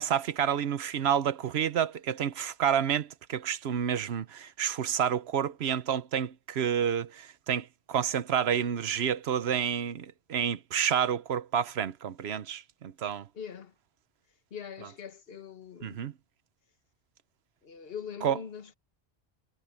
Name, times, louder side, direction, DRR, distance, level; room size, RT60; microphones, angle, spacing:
voice 1, 0.0-13.3 15.8-16.1 18.2-18.4, right 8 dB, 75° right, 1.1 m, -29 dB
voice 2, 13.3-13.7 14.5-16.0 17.6-18.7, left 7 dB, 65° left, 1.4 m, -42 dB
omnidirectional pair, 1.1 m